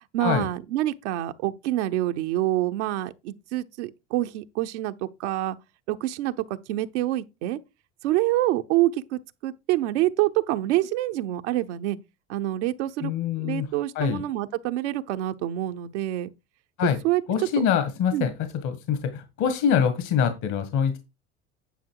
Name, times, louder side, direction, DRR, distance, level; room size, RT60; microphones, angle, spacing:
voice 1, 0.1-5.6 5.9-7.6 8.0-12.0 12.3-13.1 13.4-16.3 17.0-17.2 18.1-18.3, right 15 dB, 80° right, 0.9 m, -26 dB
voice 2, 13.0-13.7 14.0-14.2 16.8-17.0 17.3-18.3 18.6-21.0, left 7 dB, 55° left, 1.8 m, -24 dB
10.5 x 5.6 x 4.7 m
supercardioid pair, 95°, 35 cm